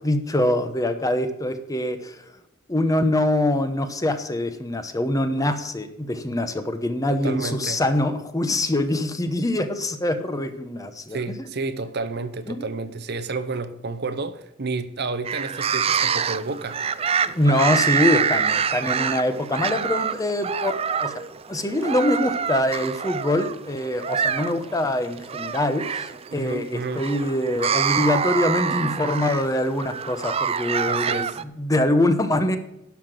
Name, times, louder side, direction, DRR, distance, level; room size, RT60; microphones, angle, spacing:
voice 1, 0.0-2.2 2.7-11.2 12.5-12.7 17.3-21.2 21.5-31.3 31.6-32.6, left 1 dB, 20° left, 0.9 m, -24 dB
voice 2, 7.2-7.8 11.1-16.8 26.3-27.0 30.9-31.4, right 3 dB, 55° right, 0.8 m, -30 dB
sound 1, 15.2-31.4, right 7 dB, 30° right, 0.4 m, -26 dB
11.5 x 5.8 x 7.6 m
head